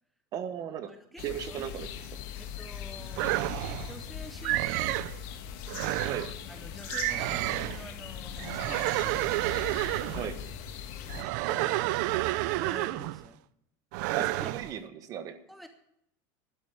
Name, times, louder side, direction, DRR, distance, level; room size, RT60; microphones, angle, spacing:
voice 1, 0.3-1.9 6.0-6.3 10.1-10.4 14.2-15.4, right 9 dB, 35° right, 12 dB, 1.1 m, -37 dB
voice 2, 0.9-1.7 2.4-3.4 3.8-5.1 6.5-9.3 10.2-10.3 11.2-11.8 12.5-13.4 14.1-14.5 15.5-15.7, equal, ahead, 7 dB, 0.6 m, -48 dB
sound 1, 1.2-11.2, left 8 dB, 55° left, 1.6 m, -40 dB
sound 2, 3.2-4.0 4.4-5.2 5.7-6.3 6.9-7.9 8.4-10.3 11.1-13.3 13.9-14.7, right 18 dB, 60° right, 0.5 m, -30 dB
11.5 x 8.3 x 9.4 m, 0.76 s
supercardioid pair, 165°, 11 cm